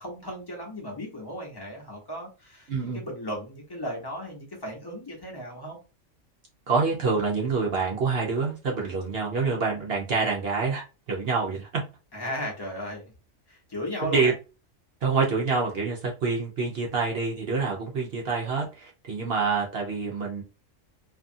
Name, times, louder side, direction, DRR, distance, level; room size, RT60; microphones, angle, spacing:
voice 1, 0.0-5.8 12.1-13.0 13.5-14.3, equal, 20° left, -2 dB, 1.0 m, -36 dB
voice 2, 2.7-3.0 6.7-11.7 14.1-14.3 15.0-20.4, right 4 dB, 55° right, -1 dB, 0.9 m, -26 dB
2.7 x 2.5 x 2.5 m, 0.30 s
omnidirectional pair, 1.3 m